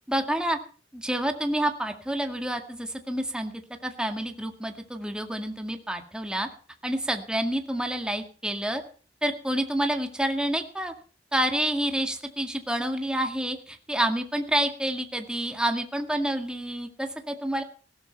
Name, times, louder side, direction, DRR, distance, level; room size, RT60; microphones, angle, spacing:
voice 1, 0.1-0.6 0.9-3.5 3.8-6.5 6.8-8.8 9.2-10.9 11.3-17.6, right 1 dB, 5° right, 5 dB, 2.0 m, -28 dB
16.5 x 13.0 x 4.5 m, 0.40 s
head